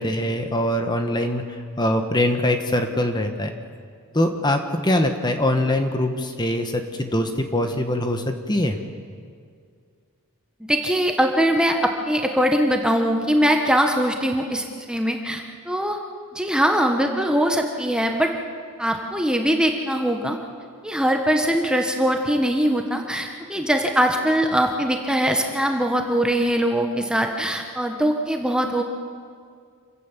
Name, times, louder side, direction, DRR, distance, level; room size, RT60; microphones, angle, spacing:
voice 1, 0.0-1.4 1.8-3.5 4.1-8.8, left 1 dB, 20° left, 6 dB, 1.4 m, -23 dB
voice 2, 10.6-16.0 16.3-18.3 18.8-20.4 20.8-28.8, equal, 5° right, 3 dB, 1.3 m, -22 dB
27.0 x 16.0 x 7.4 m, 2.2 s
head